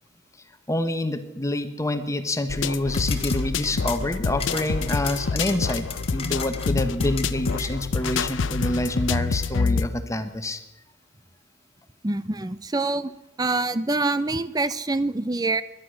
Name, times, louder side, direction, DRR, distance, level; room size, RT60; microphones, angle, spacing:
voice 1, 0.7-10.6, left 1 dB, 15° left, 9 dB, 1.2 m, -27 dB
sound 1, 2.5-9.9, left 4 dB, 90° left, 0.6 m, -27 dB
sound 2, 2.8-8.2, left 6 dB, 30° left, 1.7 m, -37 dB
voice 2, 12.0-13.1 13.4-15.6, right 2 dB, 20° right, 14 dB, 0.6 m, -25 dB
18.5 x 11.5 x 6.4 m, 0.96 s
head